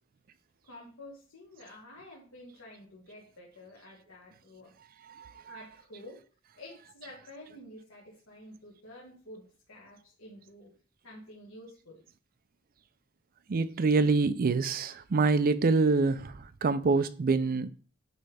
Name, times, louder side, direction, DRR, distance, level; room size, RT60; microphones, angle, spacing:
voice 1, 0.7-4.7 5.4-6.2 6.5-10.7 11.0-12.0, left 1 dB, 75° left, 1.5 m, -50 dB
voice 2, 5.1-5.6 13.5-17.7, right 4 dB, 45° right, 0.5 m, -26 dB
9.2 x 3.3 x 3.4 m
head